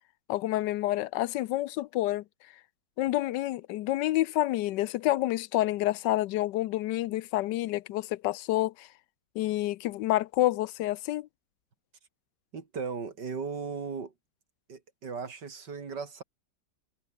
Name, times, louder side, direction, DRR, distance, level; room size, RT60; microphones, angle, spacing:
voice 1, 0.3-2.2 3.0-8.9 9.3-11.3, left 15 dB, 90° left, 1.2 m, -28 dB
voice 2, 12.5-14.1 14.7-16.2, right 5 dB, 75° right, 3.2 m, -37 dB
omnidirectional pair, 1.9 m